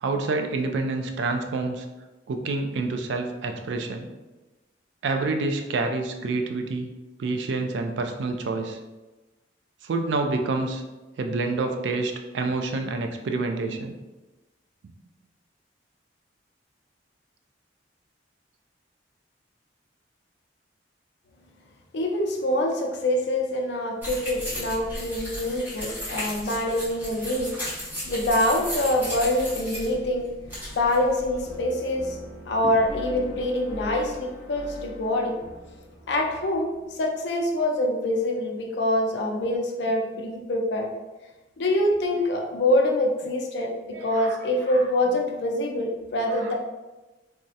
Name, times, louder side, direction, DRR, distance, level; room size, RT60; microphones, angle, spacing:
voice 1, 0.0-1.8 2.3-4.1 5.0-6.9 7.2-8.8 9.8-10.8 11.2-13.9 43.9-44.4 46.3-46.5, right 3 dB, 75° right, 5 dB, 0.3 m, -28 dB
voice 2, 21.9-30.3 30.8-32.2 32.5-35.4 36.1-40.9 41.6-46.5, left 1 dB, 65° left, 2 dB, 0.4 m, -25 dB
sound 1, 24.0-31.5, equal, 10° right, 0.8 m, -35 dB
sound 2, 31.4-37.5, left 1 dB, 35° left, 0.8 m, -42 dB
3.4 x 2.0 x 2.7 m, 1.1 s
head